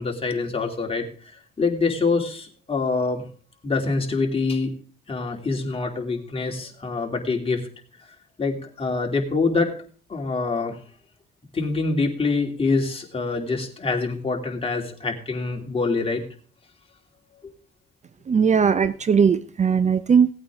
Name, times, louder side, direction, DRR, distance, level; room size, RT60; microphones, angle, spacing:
voice 1, 0.0-3.2 3.6-4.7 5.1-7.6 8.0-8.1 8.4-9.7 10.1-10.8 11.5-16.2, left 4 dB, 30° left, 1 dB, 2.9 m, -25 dB
voice 2, 18.3-20.3, right 6 dB, 35° right, 14 dB, 0.6 m, -19 dB
17.5 x 8.7 x 3.7 m, 0.42 s
cardioid pair, 90°, 20 cm